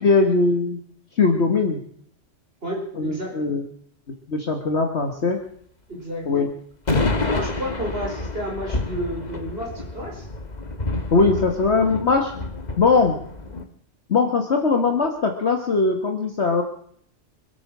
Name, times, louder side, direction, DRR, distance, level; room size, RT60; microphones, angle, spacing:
voice 1, 0.0-0.8 1.2-1.8 3.0-3.6 4.3-5.4 6.2-6.5 11.1-12.3 12.8-13.2 14.1-16.6, left 4 dB, 60° left, 4 dB, 1.8 m, -20 dB
voice 2, 2.6-3.3 5.9-6.2 7.2-10.2 11.7-11.9, equal, 50° right, -1 dB, 5.1 m, -31 dB
sound 1, 6.9-13.6, left 2 dB, 35° left, 1.7 m, -28 dB
25.0 x 9.2 x 6.1 m, 0.64 s
omnidirectional pair, 1.3 m